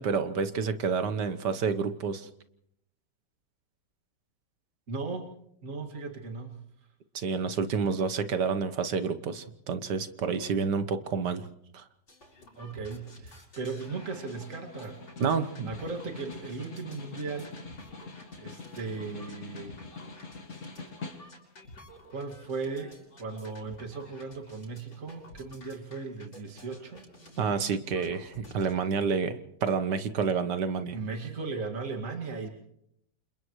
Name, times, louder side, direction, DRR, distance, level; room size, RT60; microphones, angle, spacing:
voice 1, 0.0-2.3 7.1-11.4 11.7-11.8 15.2-15.7 27.4-31.0, right 5 dB, 75° right, 10 dB, 1.8 m, -29 dB
voice 2, 4.9-5.3 5.6-6.6 12.6-15.0 15.6-17.6 18.4-19.8 20.5-20.9 22.1-27.1 30.9-32.5, right 4 dB, 45° right, 2 dB, 2.6 m, -37 dB
sound 1, 12.1-28.7, left 1 dB, 90° left, 5.9 m, -52 dB
Snare drum, 13.6-21.6, left 3 dB, 45° left, 2.4 m, -45 dB
30.0 x 27.5 x 3.2 m, 0.73 s
omnidirectional pair, 1.8 m